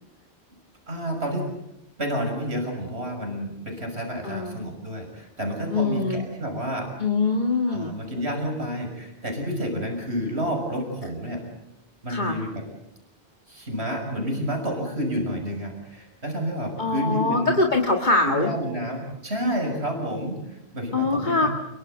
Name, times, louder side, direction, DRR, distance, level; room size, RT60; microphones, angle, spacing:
voice 1, 0.9-1.5 2.0-6.9 7.7-11.4 12.0-12.6 13.5-17.6 18.2-21.5, equal, 80° right, 3 dB, 6.5 m, -30 dB
voice 2, 4.2-4.6 5.7-6.3 7.0-7.9 12.1-12.4 16.8-18.5 20.9-21.5, left 3 dB, 45° left, 2 dB, 2.1 m, -23 dB
29.0 x 23.0 x 8.0 m, 0.88 s
omnidirectional pair, 1.1 m